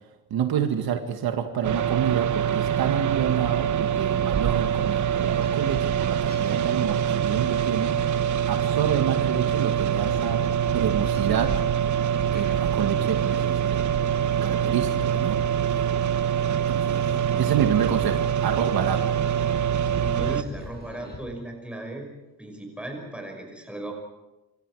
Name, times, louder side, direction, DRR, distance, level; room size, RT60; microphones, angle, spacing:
voice 1, 0.3-8.0 8.5-10.4 10.7-11.5 12.3-14.0 14.2-15.4 16.7-17.0 17.4-19.0, right 8 dB, 65° right, 5 dB, 2.0 m, -28 dB
sound 1, 1.6-20.4, right 9 dB, 50° right, 1.1 m, -24 dB
sound 2, 4.2-21.2, left 2 dB, 25° left, 7.4 m, -44 dB
voice 2, 20.0-22.1 22.4-23.9, right 1 dB, 5° right, 1 dB, 6.0 m, -36 dB
28.0 x 25.0 x 4.9 m, 1.0 s
cardioid pair, 175°, 39 cm